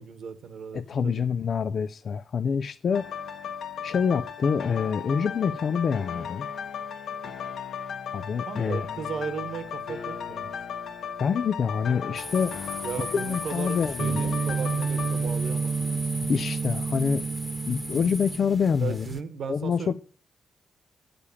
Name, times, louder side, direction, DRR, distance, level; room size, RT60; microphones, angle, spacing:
voice 1, 0.0-1.2 8.5-10.6 12.8-16.2 18.8-19.9, right 6 dB, 70° right, 1.3 m, -36 dB
voice 2, 0.7-3.1 3.8-6.5 8.1-8.9 11.2-12.6 13.1-14.3 16.3-17.2 17.7-19.1 19.5-19.9, left 6 dB, 60° left, 0.4 m, -26 dB
sound 1, 2.9-16.6 17.1-17.2, left 7 dB, 75° left, 1.3 m, -36 dB
sound 2, 12.2-19.2, equal, 5° left, 1.2 m, -38 dB
sound 3, 14.0-18.9, right 5 dB, 45° right, 0.6 m, -29 dB
8.5 x 6.7 x 7.1 m
cardioid pair, 75°, 0 cm